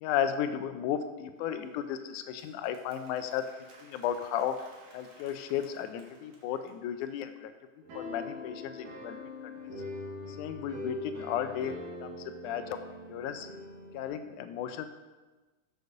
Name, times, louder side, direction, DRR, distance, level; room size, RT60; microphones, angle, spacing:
voice 1, 0.0-4.6 4.9-7.5 7.9-9.7 10.3-12.8 13.1-13.5 13.9-14.9, left 9 dB, 80° left, 9 dB, 1.9 m, -34 dB
Applause, 1.4-7.2, right 2 dB, 65° right, 2.8 m, -59 dB
sound 1, 7.8-14.1, left 2 dB, 85° right, 3.6 m, -42 dB
6.7 x 6.5 x 6.5 m, 1.2 s
omnidirectional pair, 3.8 m